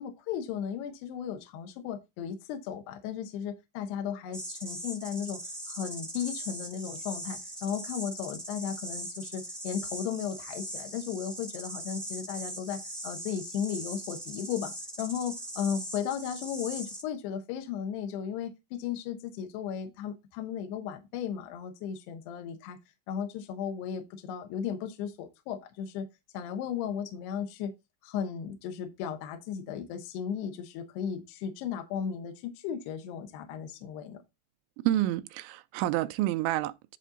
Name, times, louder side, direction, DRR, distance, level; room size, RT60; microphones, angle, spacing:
voice 1, 0.0-5.4 5.7-14.7 15.0-22.8 23.1-26.1 26.3-27.7 28.0-34.2, left 8 dB, 75° left, 2.8 m, -35 dB
sound 1, 4.3-17.0, right 1 dB, ahead, 0.4 m, -40 dB
voice 2, 34.8-37.0, right 14 dB, 85° right, 3.0 m, -29 dB
11.0 x 4.2 x 3.8 m
omnidirectional pair, 5.4 m